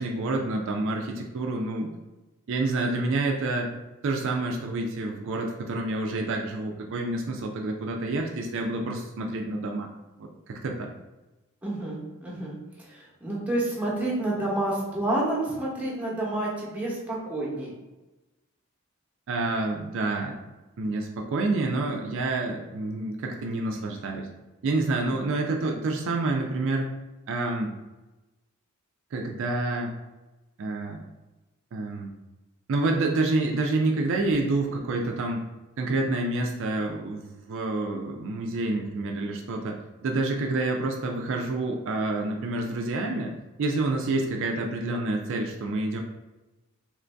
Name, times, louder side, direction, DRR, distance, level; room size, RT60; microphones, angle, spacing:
voice 1, 0.0-1.9 2.5-3.7 4.0-9.9 10.2-10.9 19.3-20.4 20.8-24.3 24.6-26.9 27.3-27.7 29.1-29.9 30.6-31.0 31.7-32.1 32.7-35.4 35.8-43.3 43.6-46.0, right 2 dB, 65° right, 1 dB, 0.4 m, -28 dB
voice 2, 11.6-12.5 12.9-17.7 25.2-25.3, right 1 dB, 5° right, -5 dB, 0.9 m, -29 dB
3.0 x 2.6 x 3.3 m, 1.1 s
head